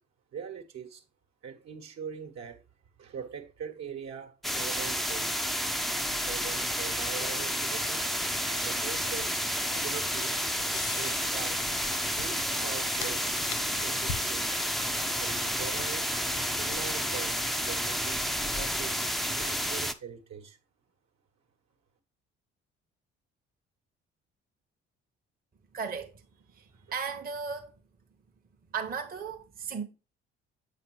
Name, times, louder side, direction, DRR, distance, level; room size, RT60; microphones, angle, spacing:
voice 1, 0.3-1.0 1.4-2.6 3.0-5.3 6.2-10.4 10.7-11.6 12.1-13.4 13.8-14.6 15.1-18.2 18.5-20.6 26.7-27.0, right 7 dB, 55° right, 1.2 m, -42 dB
sound 1, 4.4-19.9, equal, ahead, 0.5 m, -30 dB
sound 2, 8.7-17.3, left 5 dB, 75° left, 1.2 m, -44 dB
voice 2, 25.7-26.1 26.5-27.7 28.7-29.8, right 6 dB, 25° right, 0.9 m, -35 dB
7.4 x 5.1 x 3.0 m
figure-of-eight pair, 50°, 33 cm